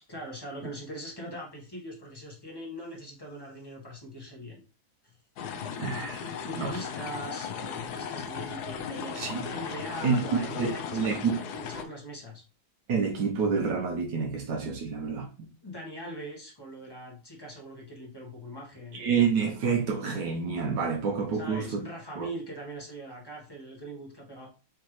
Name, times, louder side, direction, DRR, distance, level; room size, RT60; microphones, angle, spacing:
voice 1, 0.1-4.6 5.0-5.1 6.4-12.4 15.6-19.0 21.3-24.5, right 1 dB, 15° left, 1.0 m, -41 dB
sound 1, 5.4-11.8, left 7 dB, 70° left, 1.0 m, -37 dB
voice 2, 5.5-6.7 9.1-9.5 10.0-11.4 12.9-15.5 18.9-21.8 22.2-22.3, right 5 dB, 65° right, 1.4 m, -28 dB
4.9 x 3.2 x 3.1 m
omnidirectional pair, 2.1 m